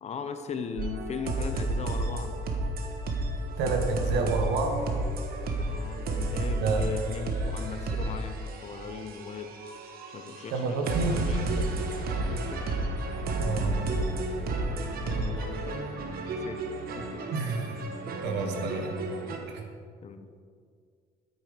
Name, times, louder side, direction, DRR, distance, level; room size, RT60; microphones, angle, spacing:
voice 1, 0.0-2.4 5.7-9.6 10.1-11.8 12.3-12.6 15.1-15.8 16.4-17.1 20.0-20.3, left 6 dB, 40° left, 8 dB, 0.8 m, -39 dB
sound 1, 0.8-19.4, right 2 dB, 65° right, 1.2 m, -32 dB
voice 2, 3.6-4.8 6.5-6.9 10.5-11.2 13.4-13.8 15.1-15.2 17.3-17.8 18.2-18.9 19.5-19.6, right 4 dB, 90° right, 5 dB, 1.3 m, -29 dB
8.8 x 8.7 x 5.1 m, 2.1 s
cardioid pair, 110°, 17 cm